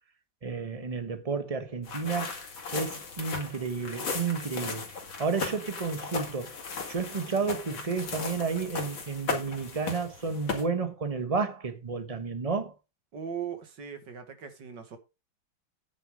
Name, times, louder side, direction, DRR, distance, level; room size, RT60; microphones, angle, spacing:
voice 1, 0.4-2.4 2.7-4.8 5.2-6.5 6.9-12.7, right 5 dB, 20° right, 1.2 m, -31 dB
sound 1, 1.8-10.6, left 4 dB, 80° left, 3.1 m, -37 dB
voice 2, 13.1-15.0, right 7 dB, 65° right, 2.4 m, -39 dB
9.9 x 6.9 x 4.9 m
omnidirectional pair, 2.1 m